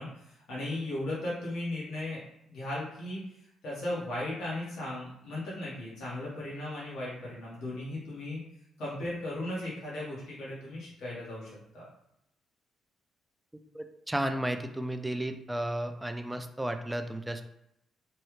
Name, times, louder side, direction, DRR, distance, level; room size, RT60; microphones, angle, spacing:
voice 1, 0.0-2.2 2.5-3.2 3.6-8.4 8.8-11.9, left 1 dB, 75° left, -7 dB, 1.3 m, -36 dB
voice 2, 13.7-17.4, right 1 dB, 10° right, 7 dB, 0.3 m, -33 dB
3.2 x 2.3 x 3.1 m, 0.81 s
cardioid pair, 90°, 0 cm